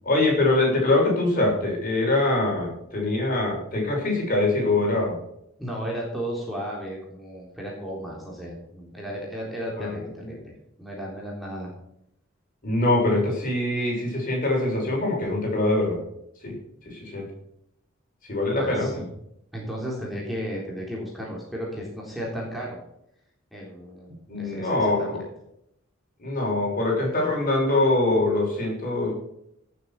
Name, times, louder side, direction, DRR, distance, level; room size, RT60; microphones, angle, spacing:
voice 1, 0.0-5.2 9.8-10.0 12.6-16.0 16.4-16.6 16.8-17.3 18.3-18.9 24.3-25.1 26.2-29.1, left 2 dB, 40° left, -1 dB, 6.5 m, -23 dB
voice 2, 5.6-10.5 10.8-11.7 18.6-19.1 19.5-22.8 23.5-25.2, equal, ahead, -4 dB, 3.6 m, -34 dB
17.5 x 7.8 x 5.9 m, 0.77 s
head